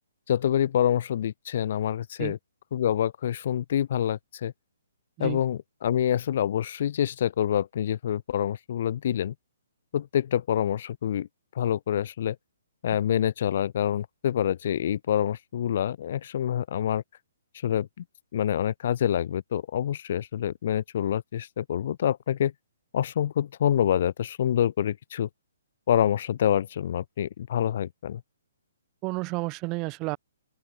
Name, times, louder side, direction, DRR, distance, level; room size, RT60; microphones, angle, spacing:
voice 1, 0.3-2.4 2.7-4.5 5.2-9.3 9.9-11.3 11.5-12.4 12.8-17.0 17.6-17.9 18.3-22.5 22.9-25.3 25.9-28.2, left 10 dB, 50° left, 0.9 m, -26 dB
voice 2, 29.0-30.2, right 26 dB, 30° right, 1.1 m, -31 dB
open air
figure-of-eight pair, 130°, 0 cm